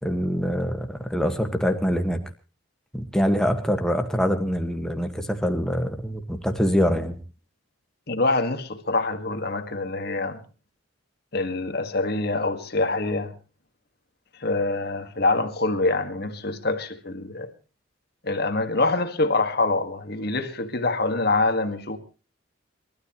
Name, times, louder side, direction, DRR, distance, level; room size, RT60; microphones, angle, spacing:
voice 1, 0.0-2.2 2.9-7.2, equal, 5° left, 1.6 m, -24 dB
voice 2, 8.1-10.4 11.3-13.3 14.4-17.5 18.2-22.0, left 2 dB, 50° left, 1.8 m, -25 dB
29.5 x 13.0 x 3.1 m
head